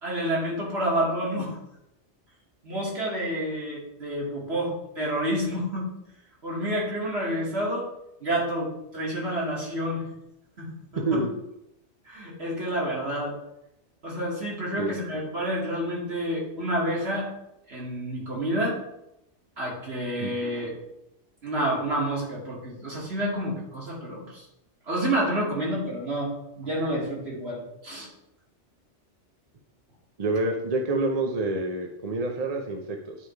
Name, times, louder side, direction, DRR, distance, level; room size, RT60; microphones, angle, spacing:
voice 1, 0.0-1.6 2.6-5.9 6.4-7.9 8.2-10.1 10.6-11.2 12.1-13.4 14.0-17.3 17.7-18.8 19.6-20.7 21.4-24.4 24.9-28.1, right 1 dB, 60° right, -4 dB, 2.5 m, -29 dB
voice 2, 30.2-33.2, right 2 dB, 40° right, 3 dB, 0.7 m, -27 dB
10.0 x 3.5 x 4.6 m, 0.86 s
omnidirectional pair, 1.2 m